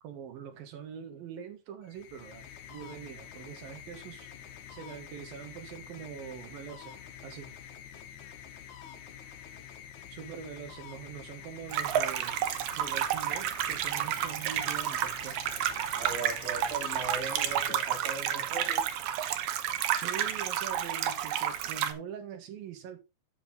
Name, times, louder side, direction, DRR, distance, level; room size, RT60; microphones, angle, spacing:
voice 1, 0.0-4.3 4.7-7.5 10.1-12.4 12.8-15.4 19.9-23.0, right 8 dB, 60° right, 3.0 m, -43 dB
sound 1, 1.8-18.4, left 9 dB, 75° left, 1.8 m, -48 dB
sound 2, 11.7-21.9, right 10 dB, 80° right, 2.0 m, -31 dB
voice 2, 16.0-18.9, right 3 dB, 35° right, 7.5 m, -39 dB
10.5 x 7.0 x 3.8 m
omnidirectional pair, 5.3 m